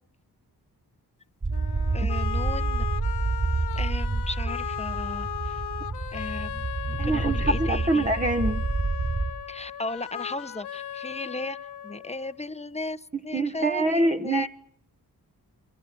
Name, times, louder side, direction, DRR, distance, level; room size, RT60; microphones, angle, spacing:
sound 1, 1.4-9.3, right 3 dB, 45° right, 7.1 m, -28 dB
sound 2, 1.5-12.5, left 10 dB, 80° left, 1.0 m, -36 dB
voice 1, 1.9-2.9 3.7-5.6 6.1-8.1 9.5-11.6 11.8-14.5, left 2 dB, 15° left, 13 dB, 1.2 m, -36 dB
voice 2, 7.0-8.6 13.3-14.5, right 2 dB, 20° right, 5 dB, 1.5 m, -25 dB
28.5 x 23.0 x 7.8 m, 0.71 s
cardioid pair, 55°, 40 cm